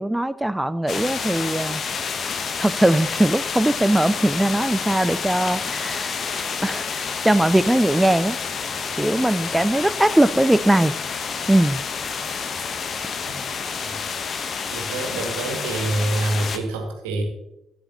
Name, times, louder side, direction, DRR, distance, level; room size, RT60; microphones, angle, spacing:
voice 1, 0.0-1.8 2.6-6.2 6.6-8.4 9.0-10.9 11.5-11.8, right 1 dB, 10° right, 14 dB, 0.4 m, -20 dB
sound 1, 0.9-16.6, left 5 dB, 45° left, 1.0 m, -29 dB
voice 2, 13.8-14.2 14.7-17.2, right 2 dB, 70° right, 3 dB, 1.8 m, -27 dB
15.0 x 9.0 x 2.9 m, 0.88 s
figure-of-eight pair, 45°, 0 cm